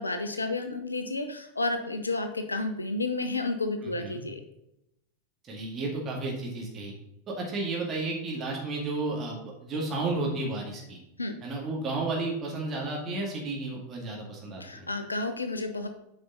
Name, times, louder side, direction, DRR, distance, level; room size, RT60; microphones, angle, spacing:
voice 1, 0.0-4.4 11.2-11.3 14.6-15.9, left 2 dB, 80° left, 8 dB, 0.7 m, -31 dB
voice 2, 3.8-4.2 5.4-6.9 7.3-11.0 11.4-14.9, right 2 dB, 25° right, -2 dB, 2.1 m, -32 dB
8.7 x 5.1 x 4.1 m, 0.84 s
figure-of-eight pair, 90°, 0 cm